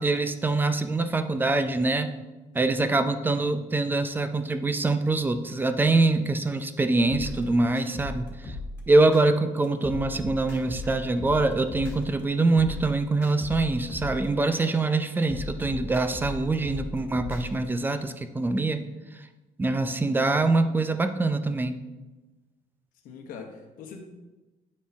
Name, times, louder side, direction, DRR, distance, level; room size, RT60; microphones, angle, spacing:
voice 1, 0.0-2.1 2.5-8.6 8.9-18.8 19.6-21.8, right 2 dB, 15° right, 9 dB, 0.5 m, -24 dB
sound 1, 7.1-9.2 9.6-12.2 12.5-14.7 15.1-17.7, left 2 dB, 15° left, 2.0 m, -37 dB
voice 2, 23.0-24.1, left 5 dB, 85° left, 2 dB, 1.2 m, -42 dB
9.2 x 4.3 x 3.5 m, 1.1 s
cardioid pair, 130°, 14 cm